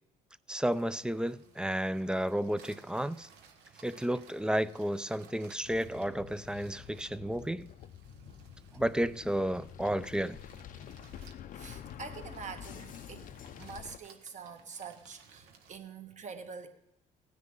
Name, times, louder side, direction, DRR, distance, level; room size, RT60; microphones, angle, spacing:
voice 1, 0.5-3.3 3.8-7.7 8.7-10.4, right 1 dB, 5° right, 0.4 m, -32 dB
sound 1, 0.7-15.8, right 6 dB, 85° right, 1.4 m, -59 dB
sound 2, 5.6-14.0, left 10 dB, 55° left, 0.5 m, -48 dB
voice 2, 11.5-16.7, right 5 dB, 45° right, 1.4 m, -46 dB
17.0 x 9.7 x 3.8 m
cardioid pair, 110°, 17 cm